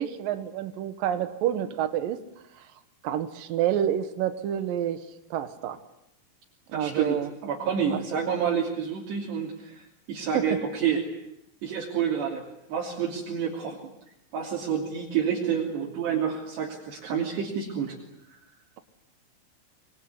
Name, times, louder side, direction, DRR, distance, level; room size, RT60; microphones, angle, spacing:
voice 1, 0.0-2.2 3.0-5.0 5.3-5.8 6.7-7.3 7.9-8.0 10.3-10.5, right 10 dB, 75° right, 11 dB, 2.1 m, -28 dB
voice 2, 6.7-11.1 11.6-12.4 12.7-13.9 14.3-18.0, right 7 dB, 60° right, -2 dB, 4.9 m, -29 dB
24.0 x 23.5 x 9.6 m, 0.82 s
omnidirectional pair, 6.0 m